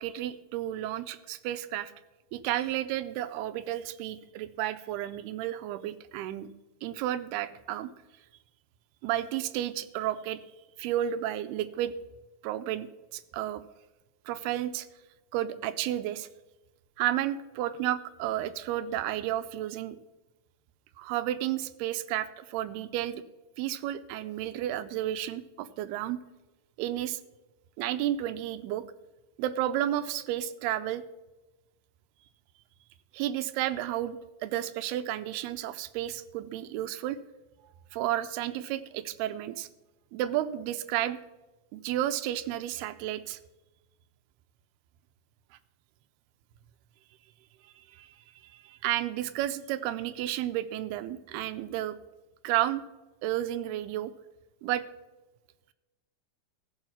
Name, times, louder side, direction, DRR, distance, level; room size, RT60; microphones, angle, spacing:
voice 1, 0.0-1.9 2.3-6.5 6.8-7.9 9.0-10.4 10.8-11.9 12.4-12.9 13.1-13.6 14.3-14.9 15.3-16.3 17.0-20.0 21.0-23.2 23.6-26.2 26.8-27.2 27.8-28.8 29.4-31.0 33.1-37.2 37.9-39.7 40.1-41.2 41.7-43.4 47.8-48.2 48.4-52.0 52.4-52.8 53.2-54.1 54.6-54.8, right 12 dB, 85° right, 13 dB, 2.6 m, -32 dB
15.5 x 5.5 x 5.7 m, 1.1 s
omnidirectional pair, 4.5 m